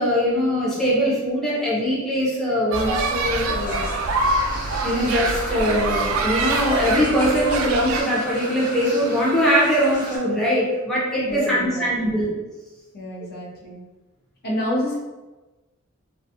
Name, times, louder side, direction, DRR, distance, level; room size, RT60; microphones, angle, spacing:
voice 1, 0.0-3.8 4.8-12.3, equal, ahead, -7 dB, 0.5 m, -21 dB
sound 1, 2.7-8.0, right 3 dB, 70° right, 0.3 m, -25 dB
sound 2, 3.6-10.2, equal, 20° left, 1.0 m, -35 dB
voice 2, 11.2-12.1 12.9-13.8 14.4-15.0, left 1 dB, 50° left, -4 dB, 0.6 m, -28 dB
2.5 x 2.3 x 2.7 m, 1.2 s
head